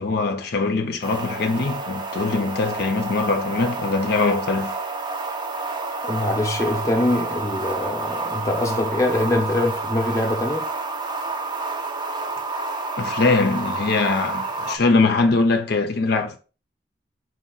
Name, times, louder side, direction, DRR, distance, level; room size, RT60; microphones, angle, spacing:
voice 1, 0.0-4.7 13.0-16.4, left 3 dB, 60° left, 0.6 m, -22 dB
sound 1, 1.0-14.8, right 3 dB, 25° right, 0.6 m, -29 dB
voice 2, 6.0-10.7, left 1 dB, 15° left, 0.8 m, -23 dB
4.9 x 2.8 x 3.8 m
head